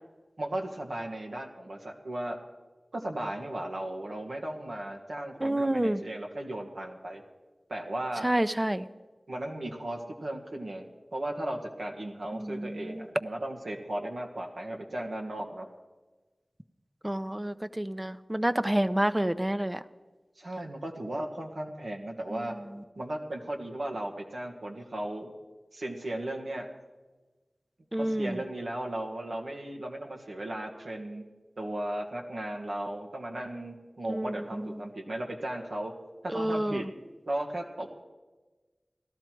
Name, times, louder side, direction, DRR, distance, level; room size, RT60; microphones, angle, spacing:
voice 1, 0.4-2.4 2.9-7.2 7.7-8.3 9.3-10.9 11.1-15.7 20.4-22.5 22.9-25.3 25.7-26.7 27.9-31.2 31.6-36.0 36.2-36.9 37.2-37.9, right 1 dB, 85° right, 1 dB, 1.8 m, -36 dB
voice 2, 5.4-6.0 8.2-8.9 12.3-13.1 17.0-19.8 22.3-22.5 27.9-28.4 34.1-34.8 36.3-36.8, right 1 dB, 20° right, 13 dB, 0.6 m, -29 dB
17.5 x 13.0 x 4.6 m, 1.3 s
wide cardioid pair, 45°, 0 cm